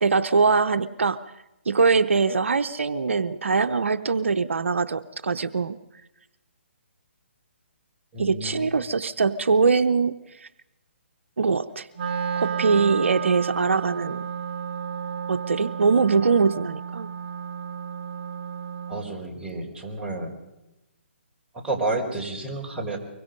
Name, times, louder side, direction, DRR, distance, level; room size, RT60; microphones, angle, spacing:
voice 1, 0.0-1.2 1.7-5.8 8.2-10.5 11.4-11.9 12.4-14.3 15.3-17.1, right 4 dB, 80° right, 10 dB, 0.8 m, -22 dB
voice 2, 8.1-8.7 18.9-20.3 21.5-23.0, right 2 dB, 10° right, -2 dB, 4.4 m, -30 dB
Wind instrument woodwind instrument, 11.9-19.1, right 7 dB, 40° right, 2.0 m, -32 dB
24.5 x 22.5 x 5.4 m, 0.96 s
hypercardioid pair, 145°, 7 cm